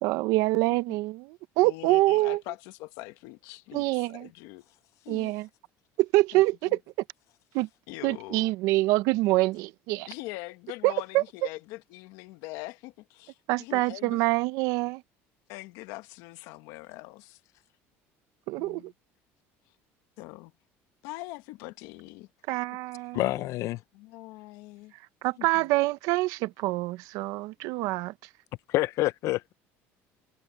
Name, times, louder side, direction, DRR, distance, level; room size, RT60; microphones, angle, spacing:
voice 1, 0.0-2.4 3.7-4.3 5.1-5.5 6.0-6.8 7.5-7.7 8.0-10.1 10.8-11.2 13.5-15.0 18.5-18.9 22.5-23.2 25.2-28.1, right 20 dB, 75° right, 0.8 m, -26 dB
voice 2, 1.6-4.6 5.0-5.3 6.3-6.8 7.9-8.5 10.1-14.2 15.5-17.4 18.6-18.9 20.2-20.5 21.0-22.3 23.9-24.9 25.4-25.7, left 20 dB, 80° left, 1.2 m, -43 dB
voice 3, 23.1-23.8 28.7-29.5, left 17 dB, 60° left, 0.5 m, -27 dB
cardioid pair, 130°, 6 cm